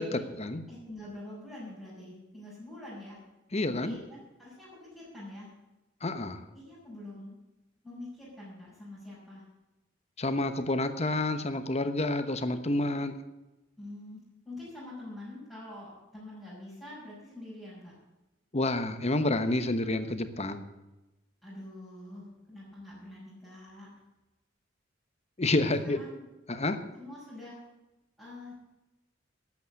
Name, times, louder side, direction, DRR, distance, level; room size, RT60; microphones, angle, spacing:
voice 1, 0.0-0.6 3.5-4.0 6.0-6.4 10.2-13.1 18.5-20.7 25.4-26.0 26.5-26.8, left 2 dB, 35° left, 9 dB, 1.1 m, -29 dB
voice 2, 0.7-3.2 3.8-5.5 6.5-7.4 7.8-9.4 13.8-14.2 14.4-17.9 21.4-23.9 25.6-26.2 26.9-27.6 28.2-28.6, left 1 dB, ahead, -10 dB, 5.7 m, -45 dB
12.5 x 8.5 x 8.4 m, 1.0 s
head